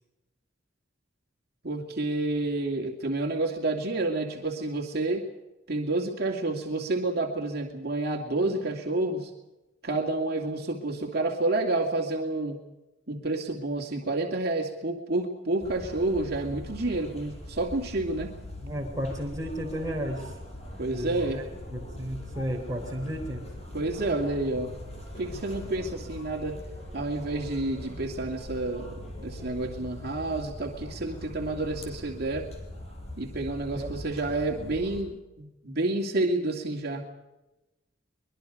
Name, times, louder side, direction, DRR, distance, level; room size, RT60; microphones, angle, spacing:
voice 1, 1.6-5.3 5.7-9.3 9.8-12.6 13.1-18.3 20.8-21.4 23.7-24.7 25.2-26.6 26.9-32.5 33.1-37.1, right 2 dB, 55° right, 0 dB, 2.6 m, -29 dB
sound 1, 15.6-35.0, left 1 dB, 35° left, 6.1 m, -41 dB
voice 2, 18.6-20.3 20.9-23.4 33.8-33.9, equal, 20° right, -1 dB, 3.5 m, -33 dB
24.0 x 22.5 x 5.2 m, 1.0 s
head